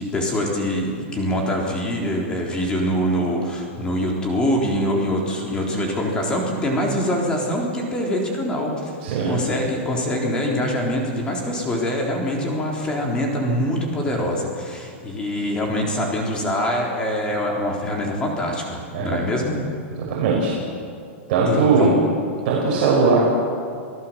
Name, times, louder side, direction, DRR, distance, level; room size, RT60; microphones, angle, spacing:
voice 1, 0.0-9.0 9.3-19.6 21.5-21.9, equal, 10° left, -1 dB, 3.8 m, -24 dB
voice 2, 9.0-9.4 18.9-19.2 20.1-20.5 21.3-21.9 22.4-23.2, right 4 dB, 45° right, -4 dB, 5.8 m, -19 dB
29.0 x 17.5 x 7.5 m, 2.3 s
supercardioid pair, 165°, 7 cm